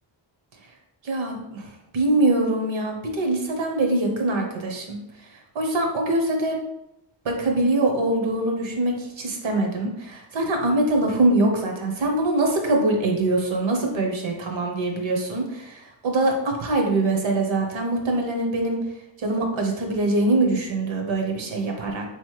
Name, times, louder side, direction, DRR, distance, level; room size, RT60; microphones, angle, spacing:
voice 1, 1.0-1.7 1.9-5.0 5.5-6.6 7.2-18.8 19.2-22.0, right 2 dB, 75° right, 2 dB, 1.0 m, -23 dB
3.7 x 3.1 x 3.2 m, 0.88 s
wide cardioid pair, 105°, 46 cm